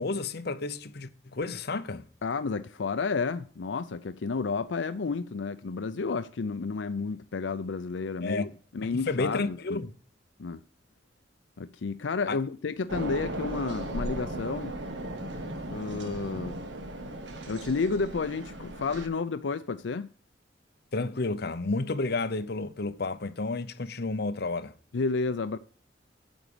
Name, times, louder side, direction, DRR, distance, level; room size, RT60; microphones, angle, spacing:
voice 1, 0.0-2.0 8.2-9.9 12.3-12.4 20.9-24.7, left 3 dB, 60° left, 0.8 m, -31 dB
voice 2, 2.2-9.8 10.4-10.6 11.6-14.7 15.7-16.6 17.5-20.1 24.9-25.6, left 4 dB, 90° left, 0.5 m, -31 dB
sound 1, 12.9-19.1, right 1 dB, 80° right, 1.6 m, -36 dB
9.1 x 6.1 x 6.8 m
head